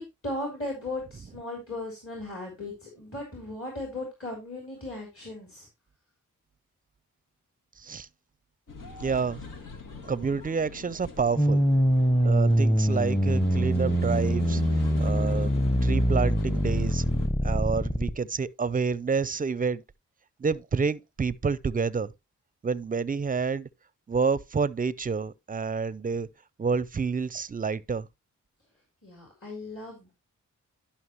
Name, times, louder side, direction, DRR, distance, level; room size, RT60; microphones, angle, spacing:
voice 1, 0.0-5.7 29.0-30.1, left 2 dB, 40° left, 3.5 m, -37 dB
voice 2, 7.8-8.1 9.0-9.4 10.0-11.6 12.2-14.6 15.0-15.5 15.8-17.0 17.4-19.8 20.4-22.1 22.6-23.7 24.1-26.3 26.6-28.1, right 5 dB, 25° right, 0.5 m, -28 dB
sound 1, 8.7-17.3, left 6 dB, 80° left, 1.6 m, -41 dB
sound 2, 11.4-18.1, right 1 dB, 10° left, 0.9 m, -24 dB
11.0 x 5.8 x 3.0 m
cardioid pair, 55°, 33 cm